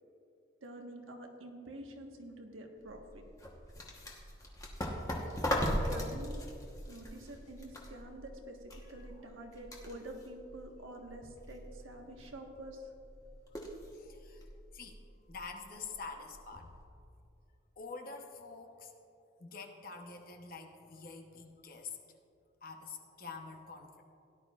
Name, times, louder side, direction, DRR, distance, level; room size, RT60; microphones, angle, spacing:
voice 1, 0.6-3.2 5.3-6.4 6.9-12.9, right 1 dB, 85° right, 2 dB, 1.4 m, -48 dB
sound 1, 2.8-16.8, left 1 dB, 15° left, 1.1 m, -41 dB
voice 2, 13.9-16.8 17.8-18.9 19.4-22.0 22.6-24.0, left 4 dB, 45° left, 4 dB, 0.8 m, -47 dB
17.0 x 11.0 x 2.4 m, 2.5 s
head